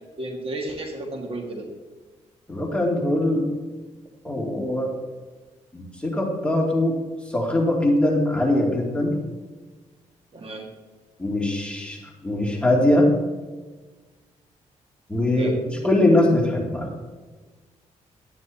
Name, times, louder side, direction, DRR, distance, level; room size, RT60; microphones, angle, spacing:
voice 1, 0.2-1.7 10.3-10.7 15.3-15.5, right 2 dB, 45° right, 2 dB, 1.9 m, -32 dB
voice 2, 2.5-3.5 4.2-4.9 5.7-7.0 7.3-9.2 11.2-13.1 15.1-15.5 15.8-16.9, left 1 dB, 10° left, -2 dB, 2.6 m, -21 dB
12.0 x 9.6 x 2.8 m, 1.3 s
cardioid pair, 65°, 13 cm